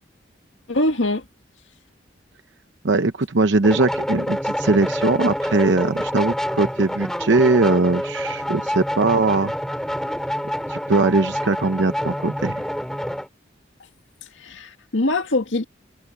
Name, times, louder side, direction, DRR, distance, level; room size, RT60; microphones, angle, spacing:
voice 1, 0.7-1.2 14.4-15.6, left 2 dB, 85° left, 2.0 m, -23 dB
voice 2, 2.8-9.5 10.7-12.6, right 3 dB, 75° right, 0.8 m, -20 dB
sound 1, 3.6-13.3, equal, 5° left, 4.2 m, -27 dB
head